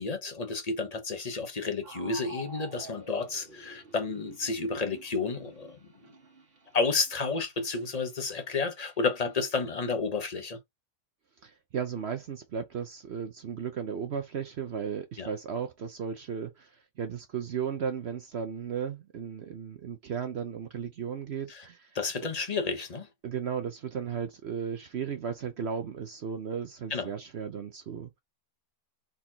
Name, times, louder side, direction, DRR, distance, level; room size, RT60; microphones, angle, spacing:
voice 1, 0.0-5.8 6.7-10.6 15.2-15.3 21.5-21.6 21.9-23.1 26.9-27.1, left 4 dB, 30° left, 0.9 m, -31 dB
sound 1, 1.8-9.4, right 2 dB, 40° right, 1.5 m, -50 dB
voice 2, 11.4-16.7 17.0-21.9 23.2-28.1, right 7 dB, 55° right, 0.8 m, -35 dB
4.4 x 3.7 x 2.8 m
omnidirectional pair, 1.6 m